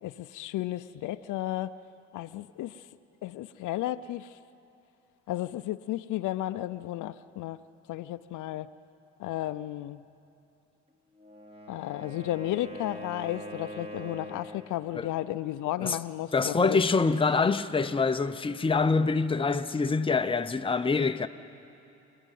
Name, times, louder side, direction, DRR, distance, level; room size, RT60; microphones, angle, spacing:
voice 1, 0.0-1.7 2.1-2.7 3.2-4.3 5.3-7.6 7.9-8.7 9.2-10.0 11.7-16.8, left 14 dB, 80° left, 0.6 m, -33 dB
Wind instrument woodwind instrument, 11.1-14.7, equal, 20° right, 2.7 m, -42 dB
voice 2, 16.3-21.3, left 4 dB, 15° left, 0.7 m, -25 dB
27.5 x 10.0 x 9.4 m
cardioid pair, 90°, 30 cm